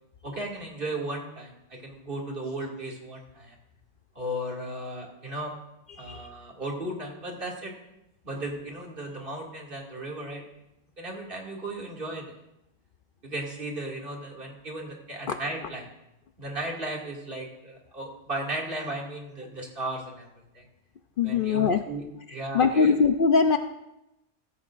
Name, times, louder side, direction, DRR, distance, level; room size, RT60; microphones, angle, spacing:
voice 1, 0.2-3.6 4.1-5.5 6.0-7.7 8.2-10.4 11.0-12.3 13.2-15.9 16.4-20.3 20.5-20.6 21.2-22.0 22.3-22.9, right 1 dB, 50° right, -2 dB, 2.5 m, -35 dB
voice 2, 21.2-21.8 22.5-23.6, left 5 dB, 55° left, 7 dB, 0.7 m, -22 dB
15.5 x 15.0 x 2.5 m, 0.87 s
omnidirectional pair, 1.2 m